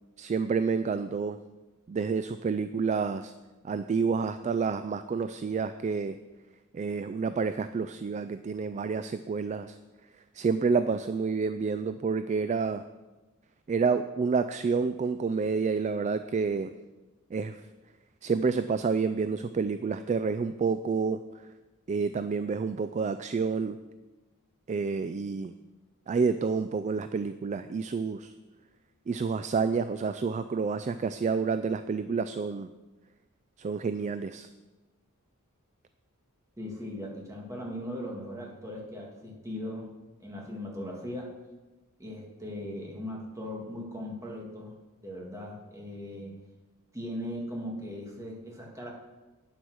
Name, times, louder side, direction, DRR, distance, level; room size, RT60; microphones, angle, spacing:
voice 1, 0.2-1.4 1.9-3.3 3.6-6.2 6.7-9.8 10.3-12.9 13.7-16.7 17.3-17.6 18.2-21.2 21.9-23.8 24.7-25.6 26.1-28.3 29.1-32.7 33.6-34.5, right 5 dB, 30° right, 11 dB, 0.3 m, -29 dB
voice 2, 36.6-39.9 40.2-41.3 42.0-44.7 45.0-46.3 46.9-48.9, left 1 dB, 15° right, -2 dB, 2.0 m, -38 dB
8.8 x 8.0 x 6.2 m, 1.2 s
head